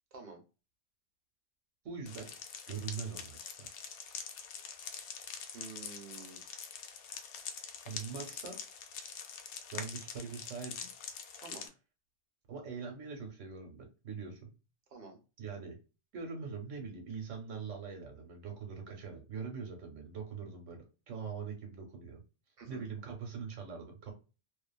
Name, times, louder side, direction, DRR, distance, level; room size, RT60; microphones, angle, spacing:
voice 1, 0.1-0.4 4.6-4.8 5.5-6.7 11.4-11.7 14.9-15.2 22.6-22.9, right 4 dB, 55° right, 0.9 m, -50 dB
voice 2, 1.8-2.3 2.7-3.7 7.4-8.6 9.7-10.8 12.5-14.5 15.4-15.8 16.1-22.2 22.7-24.1, right 5 dB, 85° right, 1.2 m, -43 dB
sound 1, 2.1-11.7, left 7 dB, 70° left, 0.8 m, -45 dB
2.5 x 2.4 x 2.2 m
omnidirectional pair, 1.2 m